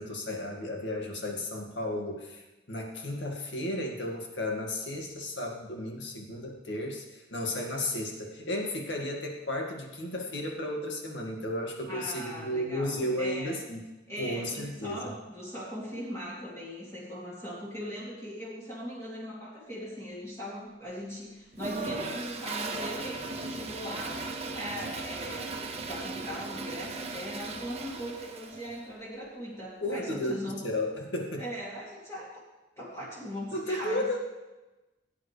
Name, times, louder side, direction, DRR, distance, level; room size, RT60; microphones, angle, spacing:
voice 1, 0.0-13.9 14.2-15.0 29.8-30.3 30.6-31.4 33.5-34.2, left 1 dB, 85° left, 1 dB, 2.1 m, -33 dB
voice 2, 11.9-13.6 14.1-25.6 25.9-30.6 31.4-32.3 32.8-34.2, equal, 15° left, -7 dB, 2.8 m, -40 dB
Toilet flush, 21.5-28.8, right 3 dB, 35° right, 1.1 m, -37 dB
17.0 x 9.4 x 3.4 m, 1.1 s
head